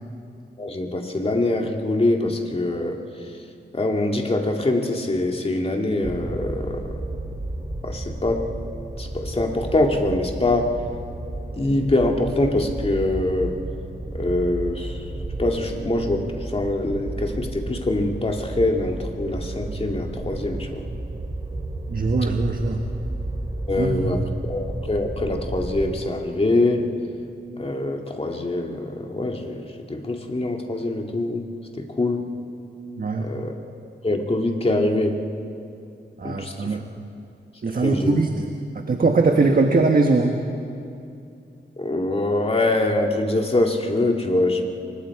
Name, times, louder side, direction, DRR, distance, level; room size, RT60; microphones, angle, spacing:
voice 1, 0.6-3.0 3.7-7.0 7.8-8.5 9.0-10.8 11.6-13.6 14.1-15.0 15.4-20.9 23.7-26.9 27.6-31.5 31.8-32.3 33.2-33.5 34.0-35.2 36.2-36.8 37.8-38.2 41.8-44.6, left 2 dB, 30° left, 2 dB, 2.2 m, -24 dB
sound 1, 6.0-25.9, right 2 dB, 25° right, 2.6 m, -32 dB
voice 2, 21.9-22.8 23.8-24.3 33.0-33.3 36.2-37.0 37.6-40.4, right 3 dB, 50° right, 4 dB, 1.4 m, -21 dB
27.5 x 24.0 x 4.8 m, 2.6 s
wide cardioid pair, 90°, 19 cm